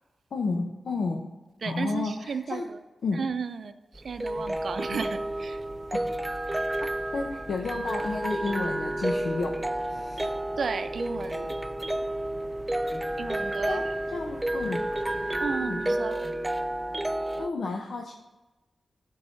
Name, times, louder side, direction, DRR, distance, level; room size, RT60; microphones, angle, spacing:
voice 1, 0.3-1.3 1.6-2.7 3.0-3.2 5.9-6.1 6.8-9.6 9.9-10.3 13.7-14.9 15.6-16.0 17.4-18.1, left 3 dB, 80° left, 2 dB, 0.7 m, -32 dB
voice 2, 1.6-2.8 3.1-5.6 10.6-11.5 13.2-13.8 15.4-16.2, right 5 dB, 70° right, 10 dB, 0.6 m, -33 dB
sound 1, 3.9-17.5, right 1 dB, 20° right, 0.3 m, -31 dB
sound 2, 4.2-15.6, left 1 dB, 55° left, 3.3 m, -49 dB
13.0 x 4.8 x 5.7 m, 1.1 s
wide cardioid pair, 95°, 0 cm